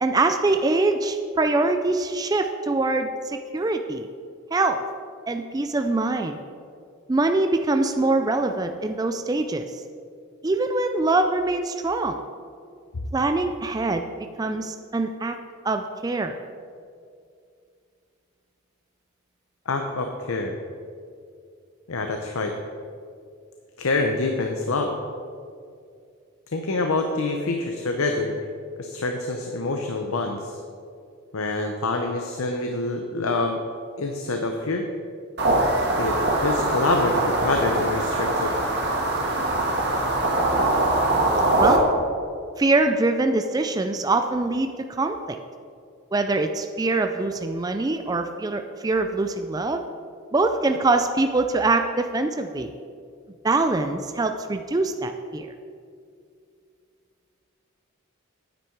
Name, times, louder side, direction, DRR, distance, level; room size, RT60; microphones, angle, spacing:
voice 1, 0.0-4.1 4.5-4.8 5.3-6.4 7.1-9.7 10.4-12.2 13.1-14.1 14.4-15.3 15.6-16.4 41.6-41.8 42.6-44.7 45.0-45.4 46.1-49.8 50.3-52.7 53.4-55.5, right 2 dB, 20° right, 6 dB, 0.3 m, -23 dB
voice 2, 19.7-20.6 21.9-22.5 23.8-24.9 26.5-28.5 28.8-30.6 31.3-33.6 34.0-34.9 36.0-38.5, left 3 dB, 85° left, 4 dB, 0.7 m, -26 dB
sound 1, 35.4-41.8, right 2 dB, 50° right, 1.5 m, -22 dB
9.3 x 9.2 x 4.6 m, 2.3 s
head